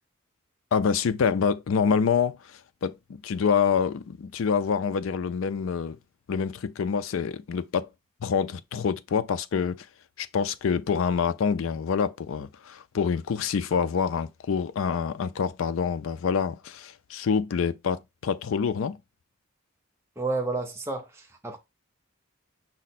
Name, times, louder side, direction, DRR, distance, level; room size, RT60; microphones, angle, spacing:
voice 1, 0.7-2.4 2.8-6.0 6.3-7.9 8.2-9.9 10.2-19.0, left 6 dB, 80° left, 0.4 m, -26 dB
voice 2, 20.2-21.6, right 3 dB, 15° right, 0.6 m, -31 dB
5.3 x 2.1 x 4.1 m
head